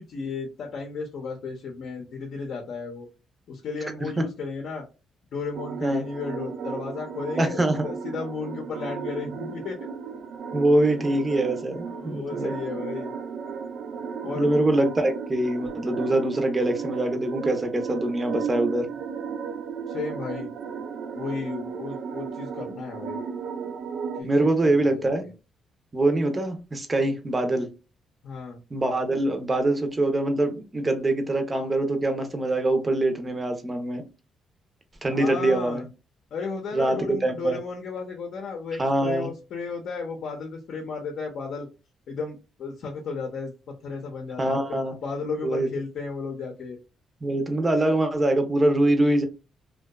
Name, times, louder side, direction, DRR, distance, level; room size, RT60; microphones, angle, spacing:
voice 1, 0.0-3.1 3.5-4.9 5.3-9.8 10.9-11.1 11.9-13.2 14.2-14.5 19.9-20.5 21.1-23.3 24.1-25.3 28.2-28.6 35.1-35.8 36.3-41.7 42.1-46.8, left 4 dB, 65° left, 0.6 m, -34 dB
sound 1, 5.5-24.2, right 6 dB, 70° right, 0.3 m, -35 dB
voice 2, 7.4-7.8 10.5-12.5 14.4-18.9 24.2-25.2 25.9-27.7 28.7-34.0 35.0-35.8 36.7-37.6 38.8-39.3 44.4-44.9 45.4-45.7 47.2-49.3, right 1 dB, 25° right, 0.6 m, -24 dB
2.7 x 2.2 x 2.2 m
cardioid pair, 90°, 0 cm